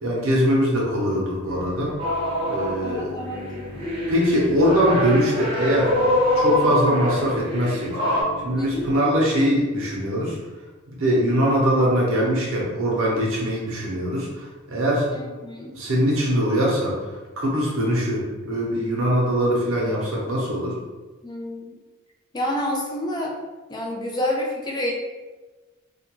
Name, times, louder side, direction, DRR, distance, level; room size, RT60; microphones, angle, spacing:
voice 1, 0.0-1.9 2.4-3.1 4.1-5.9 6.3-8.0 8.4-10.4 11.0-15.1 15.7-16.9 17.4-20.8, equal, 75° right, -3 dB, 0.8 m, -22 dB
Bowed string instrument, 1.5-9.0, left 2 dB, 45° left, 0.8 m, -41 dB
sound 1, 2.0-2.9 3.2-8.2, left 1 dB, 25° right, 0.7 m, -24 dB
voice 2, 2.8-3.5 8.6-8.9 15.1-15.7 21.2-21.8 22.3-23.3 23.7-24.9, left 1 dB, 20° left, -1 dB, 0.3 m, -28 dB
2.4 x 2.2 x 2.9 m, 1.2 s
head